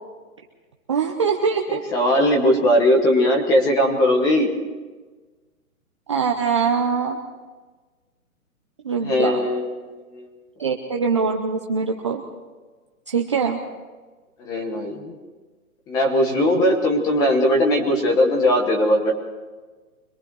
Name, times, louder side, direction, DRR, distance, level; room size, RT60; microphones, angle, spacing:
voice 1, 0.9-1.8 6.1-7.2 8.8-9.4 10.6-12.2 13.1-13.6, right 5 dB, 20° right, 1 dB, 0.7 m, -22 dB
voice 2, 1.7-4.5 9.0-10.3 14.4-15.1 15.9-19.1, left 1 dB, 10° left, 2 dB, 1.2 m, -19 dB
25.5 x 22.0 x 4.7 m, 1.3 s
hypercardioid pair, 165°, 44 cm